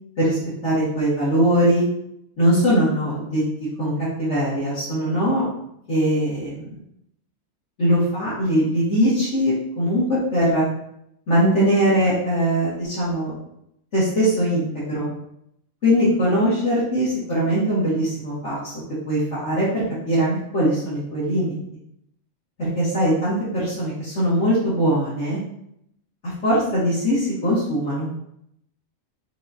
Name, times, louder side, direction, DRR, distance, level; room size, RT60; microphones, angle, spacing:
voice 1, 0.2-1.8 2.4-3.4 3.8-3.9 4.2-5.4 5.9-6.7 7.8-10.6 11.3-13.4 13.9-15.1 15.8-18.7 19.1-21.6 22.6-25.4 26.2-28.1, equal, 55° left, -12 dB, 2.0 m, -21 dB
5.5 x 2.6 x 2.7 m, 0.74 s
omnidirectional pair, 1.5 m